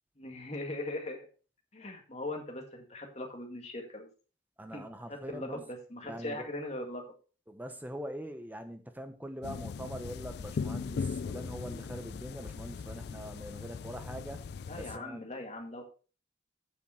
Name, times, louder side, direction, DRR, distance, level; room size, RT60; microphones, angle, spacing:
voice 1, 0.2-1.3 1.7-4.1 4.7-4.8 5.3-7.0 14.7-15.8, left 2 dB, 35° left, 2 dB, 2.0 m, -40 dB
voice 2, 4.6-5.6 6.0-6.5 7.5-14.4 14.7-15.2, equal, 10° right, 8 dB, 0.9 m, -43 dB
sound 1, 9.4-15.0, left 5 dB, 55° left, 0.3 m, -39 dB
8.7 x 7.2 x 4.4 m, 0.35 s
head